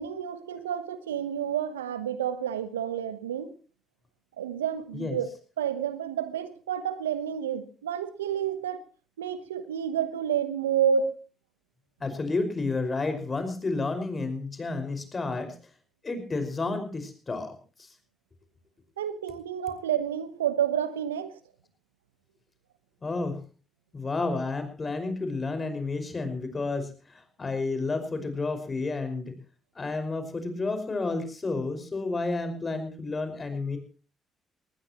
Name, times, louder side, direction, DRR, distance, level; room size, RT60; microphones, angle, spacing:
voice 1, 0.0-3.5 4.4-5.3 5.6-8.8 9.2-11.2 19.0-21.4, right 8 dB, 90° right, 13 dB, 1.0 m, -29 dB
voice 2, 12.0-15.5 16.0-17.9 23.0-23.4 23.9-29.4 29.8-33.8, left 3 dB, 35° left, 8 dB, 5.4 m, -31 dB
20.5 x 19.5 x 3.0 m, 0.37 s
hypercardioid pair, 45°, 0 cm